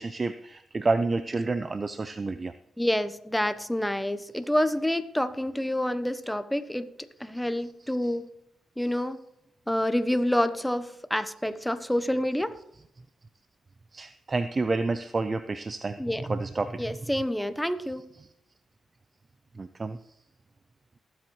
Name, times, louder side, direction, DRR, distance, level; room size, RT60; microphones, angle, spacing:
voice 1, 0.0-2.5 8.0-8.1 13.9-16.0 16.3-16.8 19.6-20.0, right 3 dB, 35° right, 11 dB, 0.5 m, -29 dB
voice 2, 2.8-8.3 8.8-9.2 9.7-12.6 16.0-16.3 16.8-18.0, left 1 dB, 5° left, 12 dB, 0.9 m, -28 dB
19.5 x 7.9 x 3.2 m, 0.79 s
cardioid pair, 60°, 0 cm